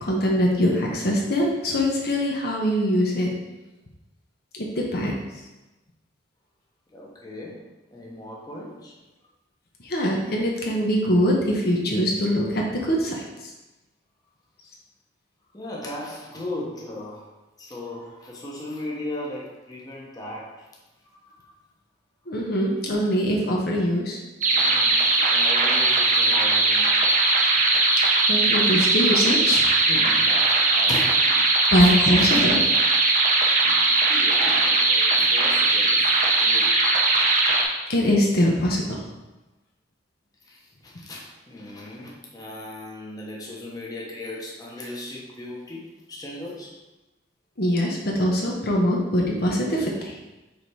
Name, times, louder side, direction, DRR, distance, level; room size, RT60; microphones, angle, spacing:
voice 1, 0.0-3.3 4.5-5.2 9.8-13.2 22.3-24.2 28.3-29.7 31.7-32.6 37.9-39.0 47.6-50.2, equal, 60° left, -2 dB, 1.0 m, -22 dB
voice 2, 6.9-7.7 7.9-9.0 15.5-17.3 17.6-20.7 21.0-21.5 24.5-27.6 29.9-31.5 31.8-32.4 32.9-33.1 33.4-36.8 40.4-46.8, left 1 dB, 20° left, -4 dB, 1.1 m, -37 dB
sound 1, 24.4-37.6, right 3 dB, 45° right, 0.9 m, -20 dB
5.2 x 4.1 x 4.7 m, 1.1 s
head